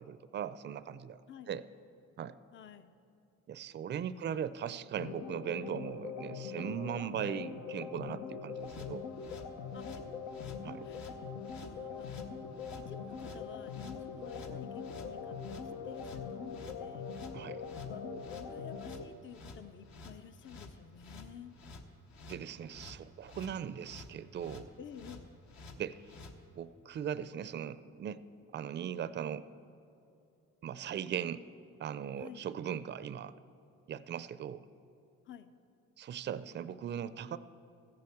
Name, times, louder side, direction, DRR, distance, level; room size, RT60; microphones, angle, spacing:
voice 1, 0.0-1.2 1.5-1.6 2.2-2.4 3.5-9.1 10.6-10.8 17.3-17.6 22.3-24.7 25.8-26.0 26.6-28.2 28.5-29.5 30.6-31.4 31.8-33.3 33.9-34.6 36.0-37.4, right 9 dB, 35° right, 15 dB, 0.4 m, -39 dB
voice 2, 2.5-2.9 4.0-4.5 9.7-10.0 10.8-11.3 11.6-17.3 17.8-21.5 24.8-25.3 32.2-32.4 35.3-35.5, left 8 dB, 40° left, 11 dB, 0.6 m, -52 dB
sound 1, 4.9-19.1, left 6 dB, 85° left, 1.0 m, -42 dB
sound 2, 8.6-26.4, left 3 dB, 65° left, 1.2 m, -51 dB
14.0 x 7.7 x 7.1 m, 2.6 s
cardioid pair, 90°, 30 cm